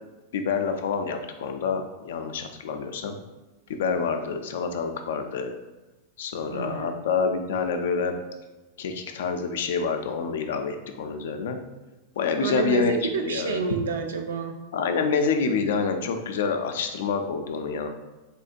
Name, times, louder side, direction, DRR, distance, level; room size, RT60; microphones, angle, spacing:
voice 1, 0.3-3.2 3.7-5.5 6.2-8.2 8.8-11.6 12.2-12.9 13.2-13.6 14.7-17.9, left 5 dB, 60° left, 6 dB, 0.4 m, -27 dB
voice 2, 6.5-7.0 12.4-14.6, right 4 dB, 65° right, 4 dB, 0.3 m, -29 dB
3.6 x 2.7 x 2.4 m, 1.1 s
figure-of-eight pair, 90°, 0 cm